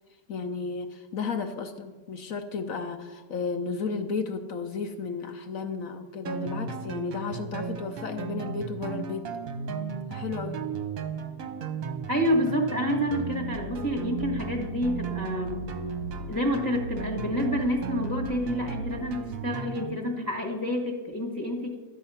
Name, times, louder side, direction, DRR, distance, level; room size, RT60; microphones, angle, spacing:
voice 1, 0.3-9.3 10.1-10.6, left 5 dB, 70° left, 7 dB, 0.8 m, -33 dB
sound 1, 6.3-20.0, right 5 dB, 55° right, 1.1 m, -35 dB
voice 2, 12.1-15.6 16.3-21.8, equal, 10° left, 0 dB, 1.2 m, -28 dB
12.5 x 8.4 x 5.6 m, 1.3 s
omnidirectional pair, 2.3 m